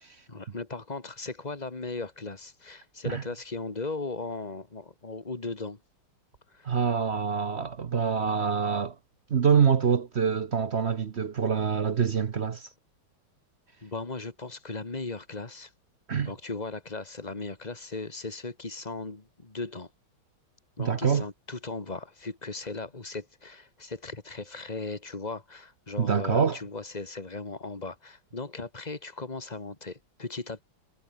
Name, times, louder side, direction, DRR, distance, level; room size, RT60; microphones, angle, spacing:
voice 1, 0.3-5.8 6.5-6.7 13.8-15.7 16.2-19.9 20.8-30.6, left 3 dB, 20° left, 2.3 m, -37 dB
voice 2, 6.6-9.0 9.3-12.7 16.1-16.3 20.8-21.2 26.0-26.6, right 6 dB, 50° right, 0.7 m, -25 dB
omnidirectional pair, 2.3 m